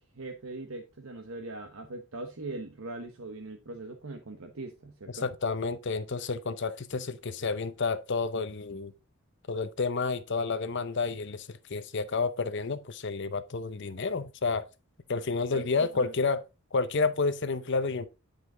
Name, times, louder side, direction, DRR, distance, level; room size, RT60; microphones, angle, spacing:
voice 1, 0.0-5.3 15.5-16.1, right 2 dB, 70° right, 1.0 m, -41 dB
voice 2, 5.2-8.9 9.5-14.6 15.1-16.4 16.7-18.1, left 4 dB, 55° left, 0.7 m, -30 dB
9.8 x 5.2 x 3.8 m
head